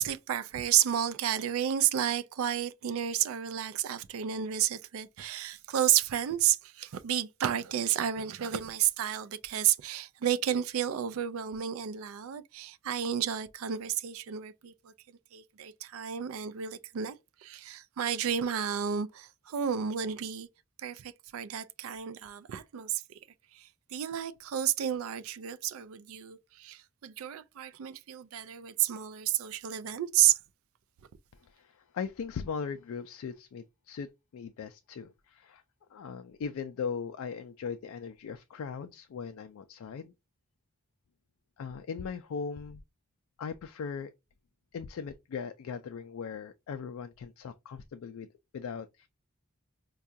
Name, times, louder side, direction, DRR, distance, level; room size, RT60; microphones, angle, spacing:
voice 1, 0.0-14.9 15.3-17.2 17.4-20.5 20.8-23.2 23.5-30.4, right 10 dB, 90° right, 0.4 m, -31 dB
voice 2, 31.4-35.6 35.9-40.1 41.6-42.8 43.4-44.1 44.7-48.3 48.5-49.1, left 6 dB, 85° left, 0.3 m, -39 dB
4.5 x 2.3 x 2.5 m
head